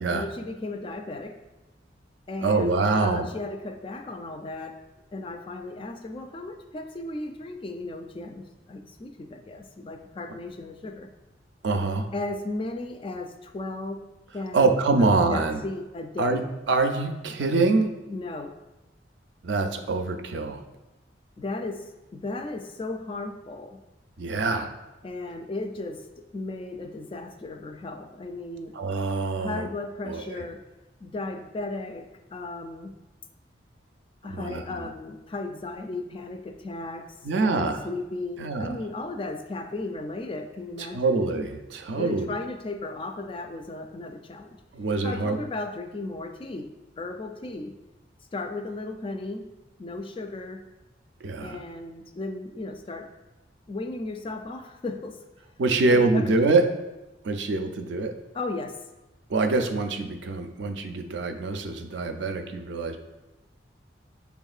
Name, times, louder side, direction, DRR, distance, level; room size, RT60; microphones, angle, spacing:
voice 1, 0.1-1.4 2.3-4.8 5.1-11.1 12.1-14.0 14.3-14.7 15.0-16.5 18.1-18.5 21.4-21.9 22.1-23.8 25.0-26.1 26.3-28.8 29.4-30.6 31.0-33.0 34.2-41.2 42.0-44.6 45.0-46.7 47.0-47.7 48.3-49.5 49.8-50.6 51.4-53.1 53.7-55.2 55.9-56.5 58.3-58.8, left 2 dB, 30° left, 6 dB, 0.3 m, -35 dB
voice 2, 2.4-3.3 11.6-12.1 14.5-15.6 16.2-16.4 16.7-17.9 19.4-20.6 24.2-24.7 28.7-29.7 30.0-30.3 34.3-34.6 37.2-37.8 38.4-38.8 40.9-42.3 44.7-45.4 51.2-51.6 55.6-56.6 57.2-58.1 59.3-63.0, right 3 dB, 80° right, 6 dB, 0.4 m, -24 dB
5.9 x 3.5 x 2.4 m, 1.0 s
head